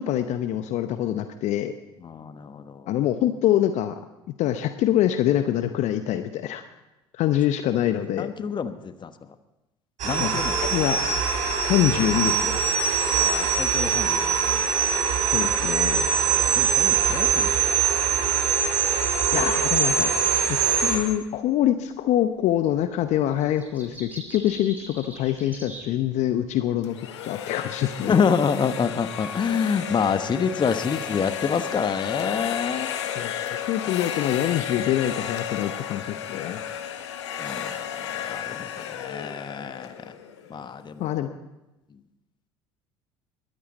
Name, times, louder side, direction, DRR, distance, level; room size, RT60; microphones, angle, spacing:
voice 1, 0.0-1.7 2.9-4.0 4.4-6.6 7.1-8.3 10.2-11.0 11.6-12.6 15.3-16.1 19.3-20.1 20.5-27.0 27.2-28.1 33.1-33.3 33.7-36.6 41.0-41.3, left 12 dB, 55° left, 9 dB, 0.8 m, -25 dB
voice 2, 2.0-2.9 7.9-9.1 10.0-10.6 13.2-14.6 16.3-17.5 28.0-32.9 37.4-40.1 40.5-41.3, left 6 dB, 30° left, 11 dB, 1.2 m, -27 dB
sound 1, 10.0-21.0, right 7 dB, 60° right, 3.4 m, -23 dB
sound 2, 21.0-21.2 22.4-22.8 23.1-26.7, right 1 dB, 10° right, 5.8 m, -43 dB
sound 3, 26.8-40.7, left 9 dB, 75° left, 1.1 m, -33 dB
21.5 x 14.5 x 4.1 m, 0.98 s
hypercardioid pair, 65°, 14 cm